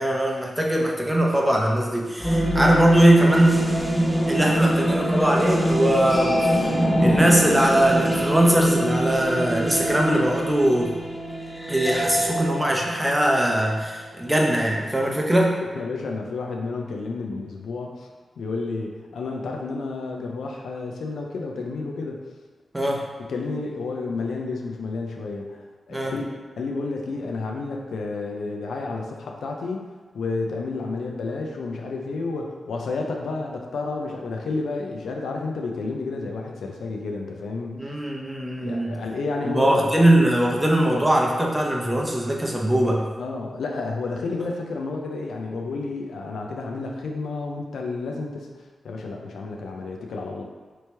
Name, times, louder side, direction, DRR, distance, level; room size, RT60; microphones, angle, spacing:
voice 1, 0.0-3.6 4.3-10.9 11.7-15.5 22.7-23.0 25.9-26.1 37.7-38.9 39.4-43.0, right 1 dB, 15° right, -2 dB, 0.7 m, -21 dB
sound 1, 2.2-14.0, equal, 20° left, 1.3 m, -24 dB
voice 2, 15.6-22.2 23.2-29.9 30.1-37.9 38.6-39.9 43.2-50.4, left 3 dB, 85° left, 1 dB, 0.4 m, -31 dB
3.0 x 2.9 x 3.3 m, 1.4 s
cardioid pair, 45°, 0 cm